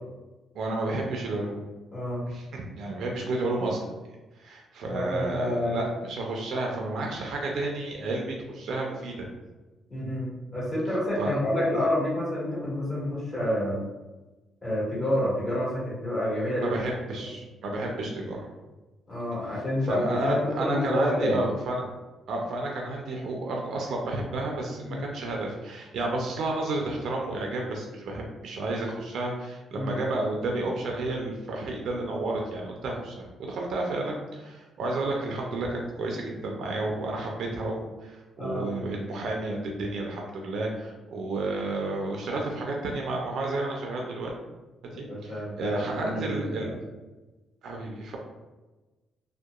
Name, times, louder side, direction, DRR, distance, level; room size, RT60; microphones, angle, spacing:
voice 1, 0.5-1.6 2.3-3.9 4.4-9.3 11.2-11.3 16.6-18.5 19.8-21.9 22.3-44.3 45.0-46.7 47.6-48.2, right 2 dB, 70° right, 0 dB, 0.4 m, -31 dB
voice 2, 1.9-2.2 4.8-5.8 9.9-13.8 14.6-16.7 17.2-17.3 19.1-21.4 24.9-25.0 29.7-29.9 38.4-38.7 44.9-46.7, left 1 dB, 30° left, -8 dB, 1.5 m, -28 dB
2.7 x 2.1 x 2.3 m, 1.1 s
cardioid pair, 90°, 0 cm